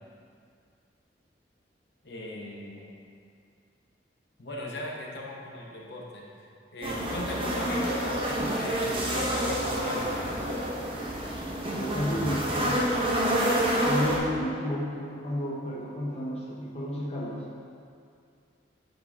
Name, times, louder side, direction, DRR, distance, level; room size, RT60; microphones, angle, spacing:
voice 1, 2.0-2.9 4.4-6.3 6.7-10.4, left 1 dB, 65° left, -2 dB, 0.9 m, -38 dB
sound 1, 6.8-14.2, right 1 dB, 30° right, 0.9 m, -28 dB
voice 2, 11.7-12.9 13.6-17.4, left 1 dB, 35° left, -4 dB, 0.7 m, -32 dB
8.8 x 3.8 x 3.6 m, 2.3 s
head